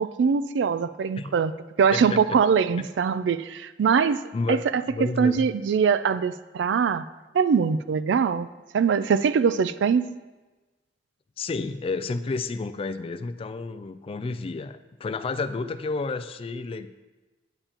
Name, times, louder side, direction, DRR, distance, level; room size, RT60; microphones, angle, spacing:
voice 1, 0.0-1.5 1.8-4.2 4.5-7.0 7.3-8.5 8.7-10.0, right 6 dB, 80° right, 15 dB, 0.3 m, -22 dB
voice 2, 1.9-2.4 2.8-2.9 4.3-5.5 11.4-16.9, left 3 dB, 30° left, 11 dB, 0.3 m, -31 dB
8.9 x 8.7 x 2.9 m, 1.2 s
head